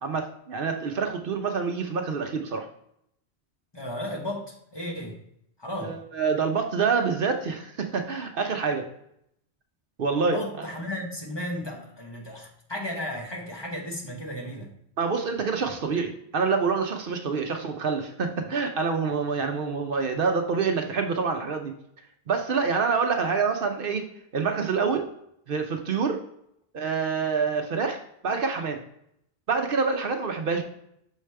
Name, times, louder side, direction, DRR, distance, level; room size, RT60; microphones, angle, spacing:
voice 1, 0.0-2.7 5.8-8.9 10.0-10.6 15.0-21.7 22.3-24.1 24.3-25.1 25.5-26.2 26.7-28.0 28.2-28.8 29.5-30.6, right 5 dB, 60° right, 5 dB, 0.8 m, -26 dB
voice 2, 3.7-5.2 5.6-6.0 10.2-14.7, left 1 dB, 25° left, -1 dB, 1.1 m, -34 dB
6.4 x 4.9 x 3.2 m, 0.74 s
omnidirectional pair, 1.1 m